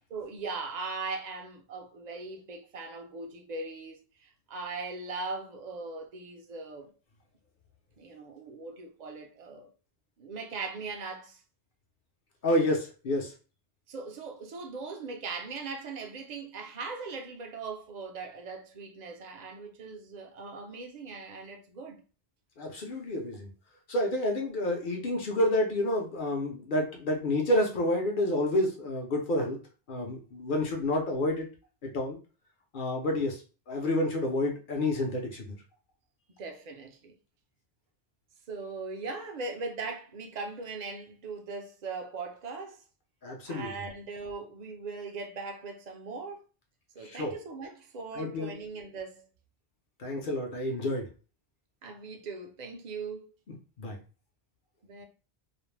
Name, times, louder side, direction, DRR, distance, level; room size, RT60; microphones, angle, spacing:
voice 1, 0.1-6.9 8.0-9.7 10.2-11.4 13.9-22.0 36.4-37.1 38.5-42.8 43.5-46.4 47.0-49.3 51.8-53.3 54.8-55.1, right 4 dB, 55° right, 0.5 m, -39 dB
voice 2, 12.4-13.3 22.6-23.5 23.9-29.6 29.9-31.4 31.8-32.2 32.7-33.4 33.7-35.6 43.2-43.7 47.0-47.3 48.1-48.5 50.0-51.1 53.8-54.0, left 1 dB, 55° left, 0.7 m, -29 dB
2.4 x 2.0 x 3.1 m
omnidirectional pair, 1.1 m